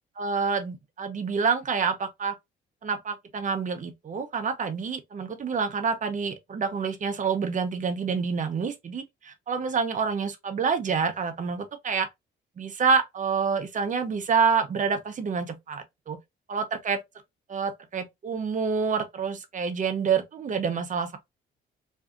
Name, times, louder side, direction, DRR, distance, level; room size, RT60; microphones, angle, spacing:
voice 1, 0.2-2.4 2.8-12.1 12.6-16.2 16.5-17.0 17.5-21.2, right 5 dB, 40° right, 0.6 m, -27 dB
2.5 x 2.4 x 2.3 m
cardioid pair, 90°, 20 cm